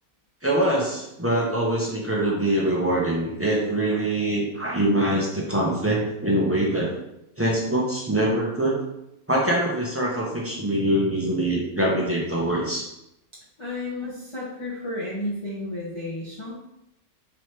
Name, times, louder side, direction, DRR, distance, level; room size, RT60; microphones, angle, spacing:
voice 1, 0.4-6.9 7.4-8.8 9.3-12.9, right 1 dB, 20° right, -4 dB, 0.4 m, -24 dB
voice 2, 13.6-16.5, left 1 dB, 25° left, -7 dB, 0.6 m, -32 dB
3.2 x 3.1 x 4.3 m, 0.85 s
omnidirectional pair, 1.5 m